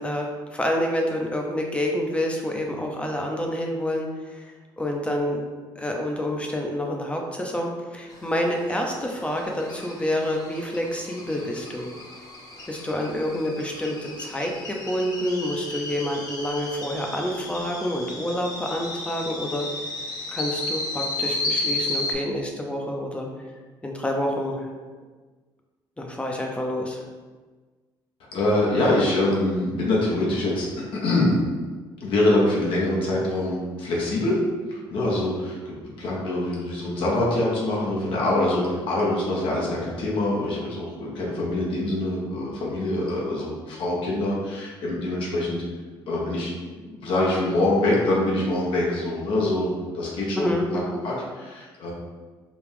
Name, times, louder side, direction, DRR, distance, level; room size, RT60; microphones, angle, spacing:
voice 1, 0.0-4.4 4.8-5.4 5.8-11.9 12.7-19.7 20.3-23.3 23.8-24.7 26.0-27.0 50.4-51.0, left 1 dB, 10° left, 1 dB, 0.7 m, -28 dB
sound 1, 8.1-22.1, left 2 dB, 40° left, 0.8 m, -33 dB
voice 2, 28.3-30.7 30.9-31.3 32.0-34.4 34.7-45.6 46.1-46.5 46.9-49.7 49.9-50.6 51.0-51.9, left 1 dB, 70° left, -4 dB, 1.0 m, -24 dB
4.9 x 2.4 x 3.4 m, 1.4 s
cardioid pair, 100°, 9 cm